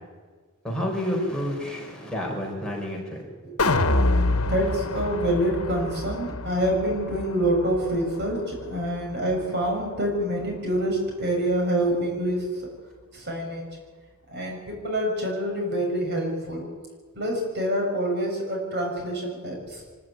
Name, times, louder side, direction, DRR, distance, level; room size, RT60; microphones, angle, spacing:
voice 1, 0.6-3.2, equal, 5° left, -2 dB, 4.8 m, -29 dB
sound 1, 3.6-9.8 10.2-10.3, left 2 dB, 80° left, 1.4 m, -27 dB
voice 2, 4.5-12.6 13.1-13.7 14.3-16.7 17.1-19.8, right 1 dB, 50° right, 1 dB, 6.8 m, -26 dB
24.0 x 14.5 x 9.6 m, 1.5 s
head